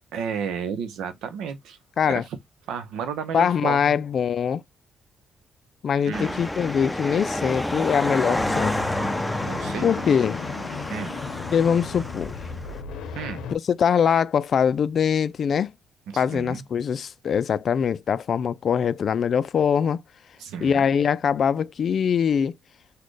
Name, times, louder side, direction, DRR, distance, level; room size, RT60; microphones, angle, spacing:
voice 1, 0.1-1.8 2.1-2.2 2.7-4.0 6.1-6.5 9.5-9.8 10.9-11.2 13.1-13.5 16.1-16.6 20.4-20.9, right 7 dB, 85° right, 0.7 m, -32 dB
voice 2, 3.3-4.6 5.8-8.8 9.8-10.4 11.5-12.3 13.5-15.7 16.1-20.0 20.6-22.5, left 7 dB, 55° left, 0.3 m, -22 dB
sound 1, 6.1-12.8, left 1 dB, 5° left, 0.5 m, -29 dB
sound 2, 8.4-13.6, left 6 dB, 85° left, 0.7 m, -36 dB
4.1 x 2.2 x 3.2 m
cardioid pair, 90°, 0 cm